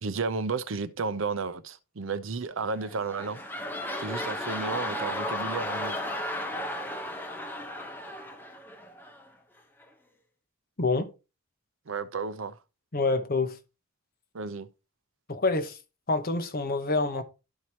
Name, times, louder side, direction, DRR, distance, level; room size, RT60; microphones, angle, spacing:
voice 1, 0.0-3.4 4.0-5.9 11.9-12.6 14.3-14.7, right 4 dB, 65° right, 0.6 m, -32 dB
sound 1, 2.7-9.3 9.8-9.9, left 1 dB, 10° left, 0.9 m, -34 dB
voice 2, 10.8-11.1 12.9-13.6 15.3-15.8 16.1-17.2, left 3 dB, 45° left, 1.0 m, -27 dB
12.0 x 4.7 x 2.8 m
head